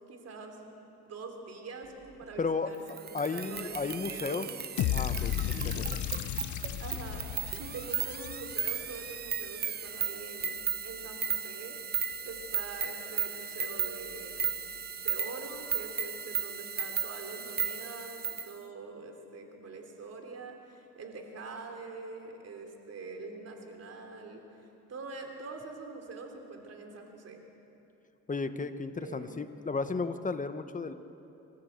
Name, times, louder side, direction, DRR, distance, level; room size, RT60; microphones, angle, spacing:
voice 1, 0.1-0.8 1.1-2.8 3.1-4.6 5.5-6.0 6.8-7.3 7.6-11.8 12.2-14.6 15.0-24.4 24.9-27.4 29.0-29.5, right 3 dB, 55° right, 3 dB, 3.4 m, -44 dB
sound 1, 1.8-15.5, right 5 dB, 10° left, 5.6 m, -61 dB
voice 2, 2.4-2.7 3.1-4.5 4.9-5.3 5.6-5.8 28.3-30.9, left 4 dB, 25° left, 10 dB, 1.2 m, -33 dB
sound 2, 2.9-18.5, right 7 dB, 35° right, 0.6 m, -35 dB
sound 3, 4.8-8.9, left 13 dB, 70° left, 0.8 m, -34 dB
26.0 x 14.0 x 8.2 m, 2.9 s
cardioid pair, 90°, 30 cm